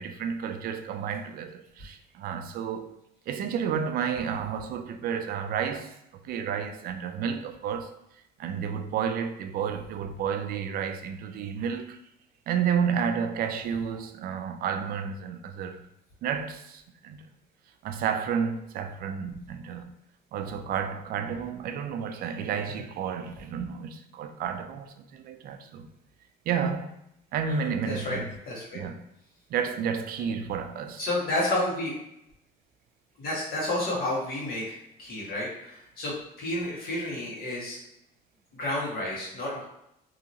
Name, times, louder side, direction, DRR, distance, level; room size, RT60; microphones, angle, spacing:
voice 1, 0.0-3.0 3.3-5.9 6.2-8.0 8.4-12.0 12.5-15.8 16.2-17.2 17.8-19.9 20.3-25.9 26.5-26.9 27.3-28.3 28.7-29.0 29.5-31.1, right 7 dB, 60° right, 0.4 m, -31 dB
voice 2, 27.5-28.2 28.5-28.8 31.0-31.9 33.2-37.8 38.5-39.7, left 1 dB, 65° left, 1.4 m, -31 dB
2.8 x 2.8 x 2.6 m
cardioid pair, 110°, 17 cm